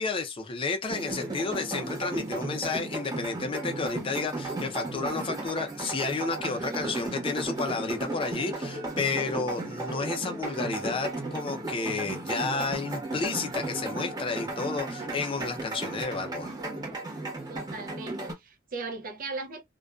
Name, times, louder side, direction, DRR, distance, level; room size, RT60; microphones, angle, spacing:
voice 1, 0.0-16.5, left 4 dB, 25° left, 0.4 m, -31 dB
sound 1, 0.9-18.3, right 2 dB, 20° right, 1.1 m, -35 dB
voice 2, 17.5-19.6, right 3 dB, 45° right, 0.5 m, -38 dB
2.4 x 2.2 x 2.3 m
head